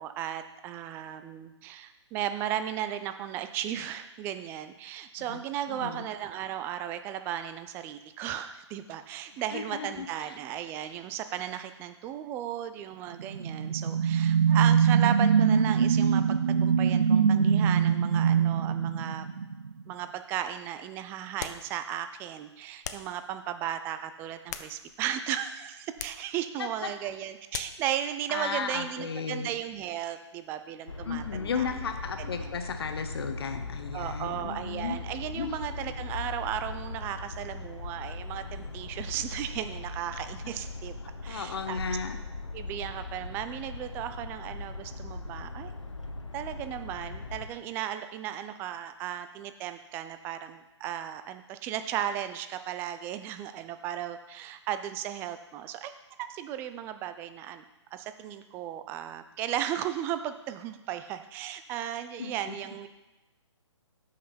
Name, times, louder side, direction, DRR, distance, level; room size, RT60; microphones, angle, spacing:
voice 1, 0.0-16.2 16.5-19.3 19.9-32.6 33.9-40.9 41.2-41.8 42.5-45.7 46.3-55.9 56.2-57.6 57.9-62.9, right 11 dB, 15° right, 10 dB, 0.4 m, -35 dB
voice 2, 5.7-6.1 9.5-10.1 26.6-26.9 28.3-29.5 31.1-35.0 35.4-35.5 41.3-42.2 62.2-62.5, left 6 dB, 55° left, 6 dB, 1.0 m, -34 dB
sound 1, 13.2-19.7, right 7 dB, 75° right, 0.6 m, -23 dB
sound 2, 21.4-21.7 22.8-23.1 24.2-25.1 25.9-26.3 27.5-27.9, left 8 dB, 35° left, 0.6 m, -39 dB
sound 3, 30.9-47.5, left 3 dB, 85° left, 1.1 m, -39 dB
12.0 x 5.6 x 4.2 m, 1.1 s
figure-of-eight pair, 135°, 15 cm